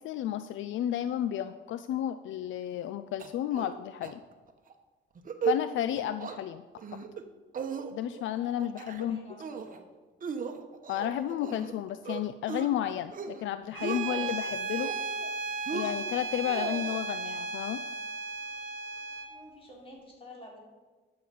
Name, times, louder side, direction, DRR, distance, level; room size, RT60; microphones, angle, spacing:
voice 1, 0.0-4.2 5.5-6.6 7.9-9.2 10.9-14.9 15.7-17.8, left 11 dB, 75° left, 12 dB, 0.4 m, -32 dB
sound 1, 3.2-3.8 4.0-4.1 4.5-4.7 5.1-5.6 5.9-6.4 6.8-7.2 7.5-8.2 8.6-9.1 9.4-9.8 10.2-11.7 12.0-12.7 13.0-13.4 13.7-14.3 14.7-15.3 15.7-17.0, right 6 dB, 45° right, 1.0 m, -36 dB
voice 2, 8.3-9.8 19.3-20.6, left 1 dB, 30° left, -2 dB, 3.6 m, -50 dB
Bowed string instrument, 13.7-19.4, right 4 dB, 80° right, 0.8 m, -35 dB
11.5 x 6.8 x 5.3 m, 1.3 s
cardioid pair, 90°, 20 cm